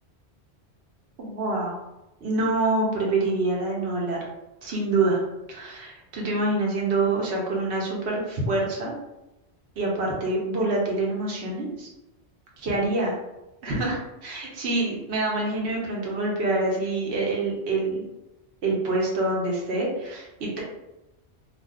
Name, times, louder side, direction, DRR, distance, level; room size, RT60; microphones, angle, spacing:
voice 1, 1.2-1.8 2.2-4.2 4.6-5.2 5.5-8.9 9.8-11.9 12.6-13.1 13.6-18.0 18.6-20.6, right 2 dB, 75° right, -2 dB, 1.1 m, -26 dB
2.6 x 2.4 x 3.4 m, 0.96 s
omnidirectional pair, 1.1 m